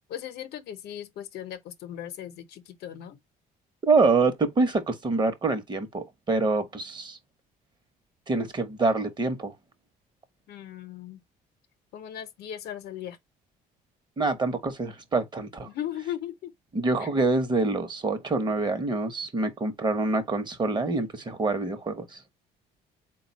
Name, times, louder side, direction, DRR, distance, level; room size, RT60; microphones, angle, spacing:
voice 1, 0.1-3.2 10.5-11.2 11.9-13.2 15.7-16.5 17.0-17.1, left 11 dB, 70° left, 0.8 m, -37 dB
voice 2, 3.9-7.2 8.3-9.5 14.2-15.7 16.7-22.2, right 3 dB, 25° right, 0.9 m, -26 dB
4.0 x 2.3 x 4.0 m
cardioid pair, 110°, 17 cm